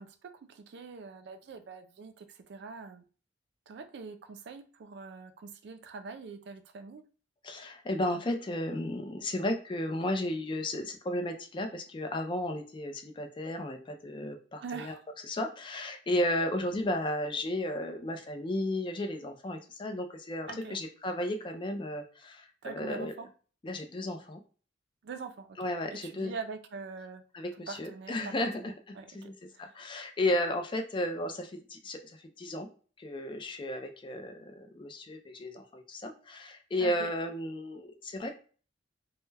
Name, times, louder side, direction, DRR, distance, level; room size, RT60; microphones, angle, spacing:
voice 1, 0.0-3.0 3.7-7.0 14.6-15.0 20.5-20.8 22.6-23.3 25.0-25.6 25.9-27.2 27.7-29.7 36.8-37.1, right 4 dB, 65° right, 8 dB, 0.3 m, -44 dB
voice 2, 7.4-14.9 15.2-23.1 23.6-24.4 25.6-26.3 27.3-32.0 32.4-32.7 33.0-38.3, left 1 dB, 25° left, 5 dB, 0.4 m, -34 dB
2.2 x 2.1 x 3.2 m, 0.39 s
head